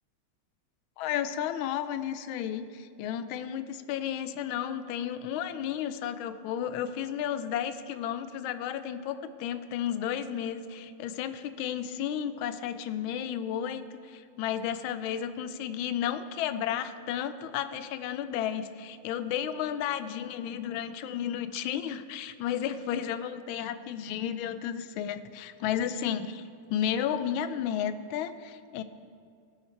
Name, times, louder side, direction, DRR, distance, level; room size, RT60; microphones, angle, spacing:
voice 1, 1.0-28.8, left 9 dB, 80° left, 12 dB, 1.3 m, -33 dB
17.5 x 5.8 x 4.4 m, 2.3 s
omnidirectional pair, 2.3 m